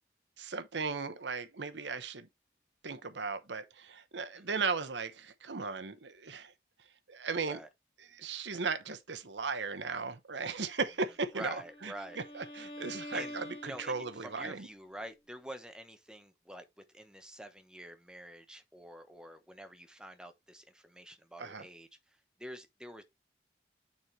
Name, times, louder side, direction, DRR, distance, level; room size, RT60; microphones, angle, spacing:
voice 1, 0.4-2.3 2.8-6.5 7.1-7.6 8.1-14.7 21.4-21.7, right 4 dB, 85° right, 1.0 m, -37 dB
Bowed string instrument, 11.3-14.4, left 1 dB, 30° left, 1.9 m, -46 dB
voice 2, 11.3-12.2 13.1-13.3 13.6-23.0, right 1 dB, 5° right, 0.9 m, -47 dB
9.3 x 4.3 x 3.2 m
head